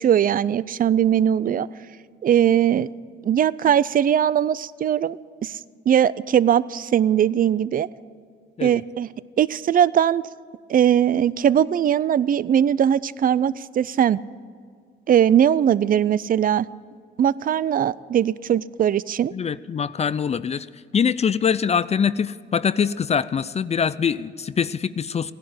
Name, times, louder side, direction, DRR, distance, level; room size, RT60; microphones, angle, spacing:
voice 1, 0.0-1.7 2.2-2.9 3.2-5.6 5.9-7.9 8.6-9.1 9.4-10.3 10.7-14.2 15.1-16.7 17.2-19.3, right 9 dB, 45° right, 19 dB, 0.5 m, -20 dB
voice 2, 19.3-20.7 20.9-25.3, left 7 dB, 35° left, 17 dB, 0.4 m, -23 dB
16.5 x 11.0 x 7.9 m, 2.1 s
cardioid pair, 90°, 20 cm